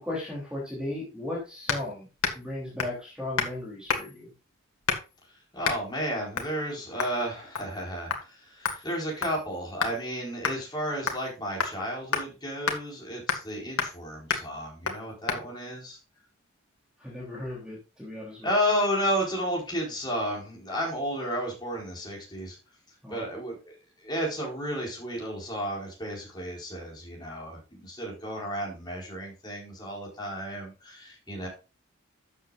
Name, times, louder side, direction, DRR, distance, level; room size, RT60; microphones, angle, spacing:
voice 1, 0.0-2.1 2.3-4.3 17.0-18.5 23.0-23.2, left 1 dB, 5° right, -4 dB, 3.0 m, -36 dB
sound 1, 1.7-1.9 2.2-2.5 2.8-3.0 3.4-3.6 3.9-4.2 4.9-5.2 5.6-5.8 6.4-6.5 7.0-7.2 7.6-7.8 8.1-8.2 8.7-10.0 10.4-10.6 11.1-11.3 11.6-11.8 12.1-12.3 12.7-12.8 13.3-13.5 13.8-14.0 14.3-14.5 14.9-15.0 15.3-15.4, left 5 dB, 90° left, 1.9 m, -30 dB
voice 2, 5.5-16.0 18.4-22.6 23.1-23.7 24.0-31.5, equal, 20° left, -2 dB, 4.6 m, -32 dB
12.5 x 7.5 x 2.5 m, 0.30 s
head